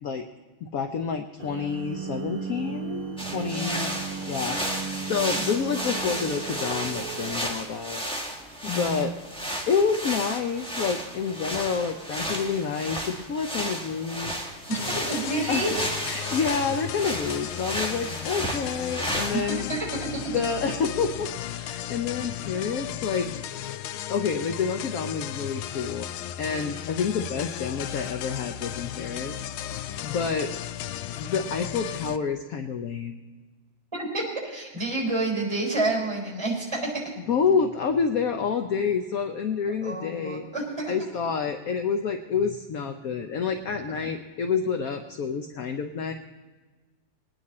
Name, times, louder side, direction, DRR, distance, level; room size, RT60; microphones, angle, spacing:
voice 1, 0.6-8.0 8.6-9.1 9.7-14.3 15.5-15.6 16.1-19.7 20.3-23.3 24.1-26.1 26.4-29.5 30.0-30.5 31.2-33.2 37.3-40.4 40.9-46.1, left 6 dB, 65° left, 6 dB, 0.9 m, -28 dB
sound 1, 1.4-7.3, right 6 dB, 50° right, 2.6 m, -36 dB
sound 2, 3.2-19.4, equal, 5° left, 1.3 m, -33 dB
voice 2, 3.5-3.8 8.6-9.1 14.7-14.8 15.1-15.7 19.3-19.4 19.7-19.9 20.1-20.2 33.9-37.1 39.8-40.9, right 2 dB, 10° right, -1 dB, 4.5 m, -29 dB
sound 3, 14.7-32.2, left 11 dB, 85° left, 1.5 m, -35 dB
21.5 x 9.7 x 4.2 m, 1.3 s
omnidirectional pair, 2.3 m